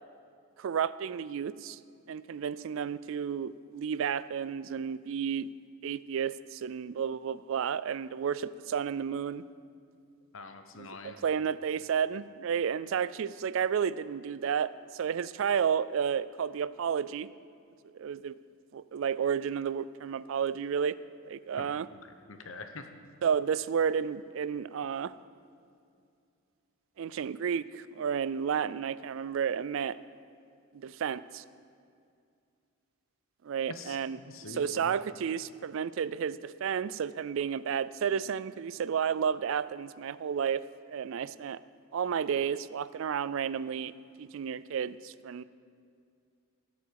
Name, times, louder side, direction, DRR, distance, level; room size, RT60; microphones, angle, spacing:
voice 1, 0.6-1.8 2.1-5.5 5.8-9.4 10.8-17.3 17.9-18.3 18.7-21.0 21.2-21.9 23.2-25.1 27.0-30.0 30.7-31.4 33.4-34.2 34.5-41.6 41.9-45.4, right 7 dB, 60° right, 17 dB, 0.3 m, -32 dB
voice 2, 10.3-11.2 21.6-21.7 22.0-22.9 33.7-34.9, left 3 dB, 60° left, 7 dB, 0.9 m, -45 dB
16.5 x 8.1 x 4.7 m, 2.3 s
head